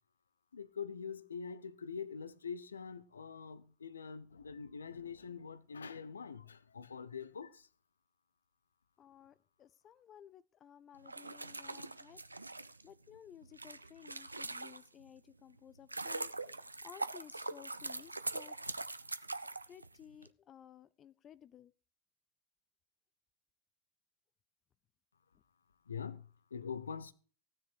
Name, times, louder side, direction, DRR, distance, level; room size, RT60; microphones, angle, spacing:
voice 1, 0.5-7.7 25.9-27.1, left 6 dB, 75° left, 0.7 m, -44 dB
voice 2, 9.0-12.2 12.8-16.5 16.8-18.8 19.7-21.7, left 9 dB, 30° left, 0.5 m, -56 dB
sound 1, 11.0-15.1 15.6-20.3, right 2 dB, 85° right, 0.5 m, -42 dB
15.5 x 9.8 x 4.8 m
figure-of-eight pair, 85°, 0 cm